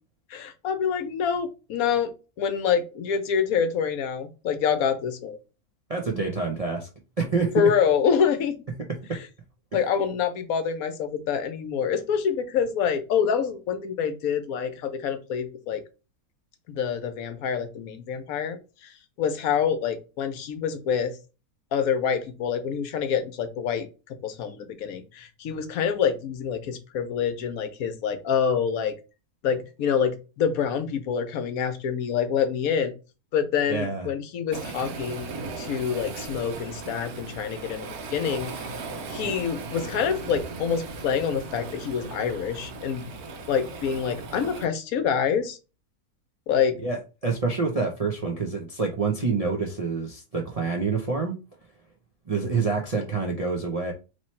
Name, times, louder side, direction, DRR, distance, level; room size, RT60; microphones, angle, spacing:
voice 1, 0.3-5.4 7.5-8.6 9.7-15.8 16.7-18.9 19.2-21.2 21.7-23.9 24.2-28.9 29.4-32.9 33.3-35.3 35.6-38.5 39.1-43.1 43.5-45.6 46.5-46.8, left 7 dB, 75° left, 10 dB, 1.1 m, -26 dB
voice 2, 5.9-6.9 7.2-7.7 9.1-9.2 9.7-9.8 33.7-34.1 46.8-51.3 52.3-53.9, right 4 dB, 45° right, 1 dB, 0.5 m, -27 dB
Waves surf, 34.5-44.7, right 3 dB, 75° right, 1.3 m, -37 dB
3.1 x 3.0 x 4.2 m, 0.31 s
omnidirectional pair, 1.6 m